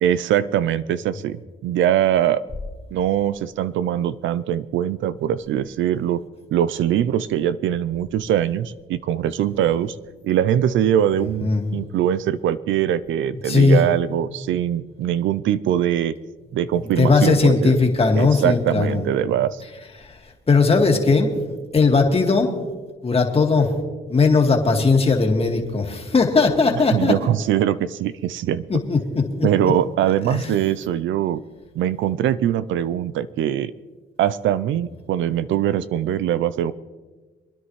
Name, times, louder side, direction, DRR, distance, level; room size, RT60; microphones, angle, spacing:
voice 1, 0.0-2.4 2.9-6.2 6.5-10.0 10.2-16.1 16.5-17.8 18.2-19.6 26.9-28.6 29.4-31.4 31.7-33.7 34.2-36.7, right 10 dB, 75° right, 15 dB, 0.5 m, -22 dB
voice 2, 11.4-11.8 13.5-13.8 17.0-19.0 20.0-20.1 20.5-21.3 21.7-22.5 23.0-23.7 24.1-27.2 28.7-29.5 30.3-30.5, left 4 dB, 30° left, 2 dB, 2.0 m, -18 dB
25.0 x 10.5 x 3.2 m, 1.3 s
cardioid pair, 90°, 20 cm